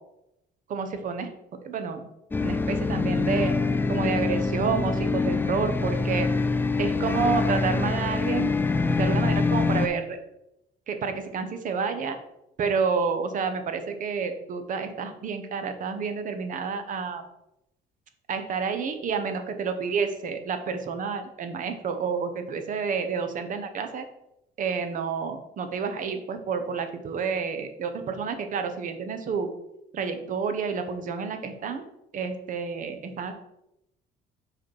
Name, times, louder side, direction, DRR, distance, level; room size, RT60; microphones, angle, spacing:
voice 1, 0.7-1.3 1.6-2.0 2.4-3.5 3.9-6.3 6.8-8.6 9.0-10.2 10.9-12.2 12.6-17.2 18.3-24.1 24.6-29.5 29.9-31.8 32.1-33.3, right 5 dB, 50° right, 7 dB, 0.9 m, -29 dB
sound 1, 2.3-9.9, left 4 dB, 10° left, 0.4 m, -25 dB
5.0 x 4.4 x 4.7 m, 0.85 s
cardioid pair, 110°, 17 cm